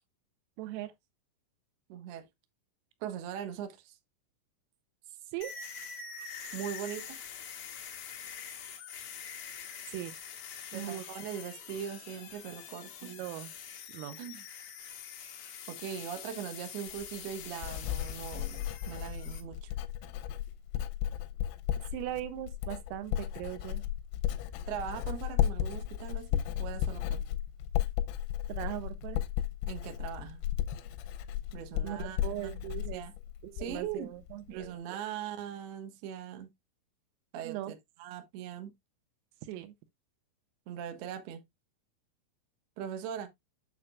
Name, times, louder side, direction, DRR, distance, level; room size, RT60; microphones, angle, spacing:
voice 1, 0.6-0.9 5.3-5.5 9.9-10.1 10.7-11.0 13.0-13.5 13.9-14.2 21.9-23.8 28.5-29.2 31.8-33.0 33.4-34.8 37.4-37.7 39.5-39.7, right 14 dB, 85° right, 3.4 m, -39 dB
voice 2, 1.9-2.3 3.0-3.9 6.5-7.2 10.7-13.2 14.2-14.5 15.7-19.7 24.7-27.2 29.7-30.4 31.5-33.1 33.5-34.2 34.5-36.5 37.3-38.7 40.7-41.4 42.8-43.3, right 9 dB, 70° right, 2.6 m, -40 dB
sound 1, 5.4-19.4, left 7 dB, 60° left, 2.9 m, -45 dB
Writing, 16.9-33.9 34.2-34.7, left 11 dB, 90° left, 3.5 m, -34 dB
8.6 x 6.5 x 2.4 m
omnidirectional pair, 5.9 m